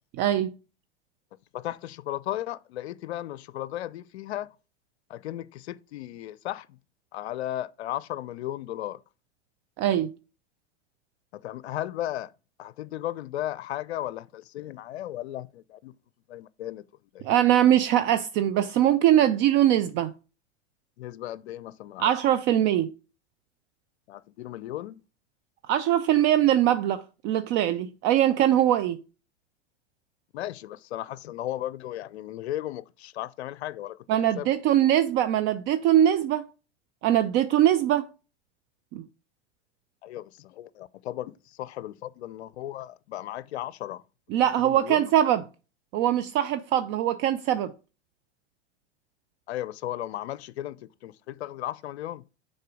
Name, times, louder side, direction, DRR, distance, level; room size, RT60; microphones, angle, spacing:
voice 1, 0.2-0.5 9.8-10.1 17.2-20.1 22.0-22.9 25.7-29.0 34.1-36.4 37.0-38.1 38.9-39.0 44.3-45.4 45.9-47.7, right 11 dB, 35° right, 0.4 m, -22 dB
voice 2, 1.5-4.5 5.1-6.8 7.1-9.0 11.3-12.3 12.6-15.9 16.3-16.8 17.1-17.3 21.0-22.1 24.1-25.0 30.3-34.0 34.4-34.5 40.0-44.0 44.6-45.1 49.5-52.2, left 13 dB, 65° left, 0.6 m, -35 dB
6.6 x 4.2 x 4.9 m
figure-of-eight pair, 95°, 35 cm